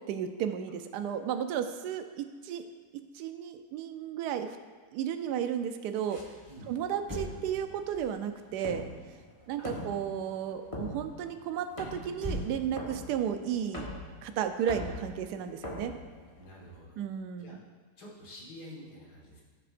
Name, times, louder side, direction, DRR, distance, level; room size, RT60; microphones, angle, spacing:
voice 1, 0.1-2.6 2.9-4.6 4.9-6.2 6.7-8.8 9.5-13.9 14.2-15.9 17.0-17.6, right 9 dB, 80° right, 8 dB, 1.1 m, -33 dB
sound 1, 6.1-16.8, left 1 dB, 20° left, 1.2 m, -44 dB
Motor vehicle (road), 7.0-10.5 12.2-14.8 15.0-15.3, equal, 15° right, 0.9 m, -43 dB
voice 2, 9.6-9.9 16.4-17.0 17.3-17.5 18.0-19.4, equal, 70° left, -3 dB, 2.3 m, -48 dB
14.0 x 6.7 x 2.5 m, 1.5 s
omnidirectional pair, 1.8 m